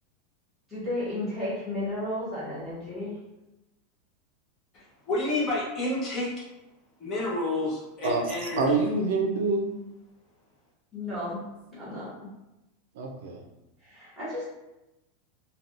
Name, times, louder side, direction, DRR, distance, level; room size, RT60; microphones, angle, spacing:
voice 1, 0.7-3.2 10.9-12.1 13.8-14.5, left 1 dB, ahead, -13 dB, 1.2 m, -33 dB
voice 2, 5.1-6.3 7.0-8.6, left 2 dB, 25° left, -6 dB, 0.9 m, -29 dB
voice 3, 8.0-9.8 12.9-13.4, right 3 dB, 65° right, 3 dB, 0.5 m, -26 dB
3.3 x 2.3 x 2.6 m, 0.97 s
supercardioid pair, 170°, 0 cm